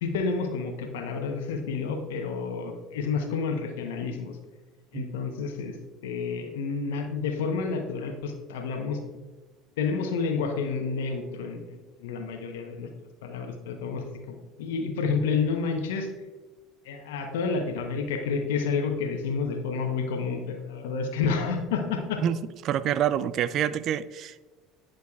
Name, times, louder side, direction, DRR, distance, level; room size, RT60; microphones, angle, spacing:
voice 1, 0.0-4.4 4.9-5.7 6.0-9.0 9.8-12.9 13.2-16.1 16.8-22.2, left 5 dB, 80° left, 5 dB, 0.9 m, -30 dB
voice 2, 22.6-24.4, right 10 dB, 50° right, 16 dB, 0.4 m, -26 dB
10.5 x 6.4 x 2.4 m, 1.2 s
hypercardioid pair, 75°, 0 cm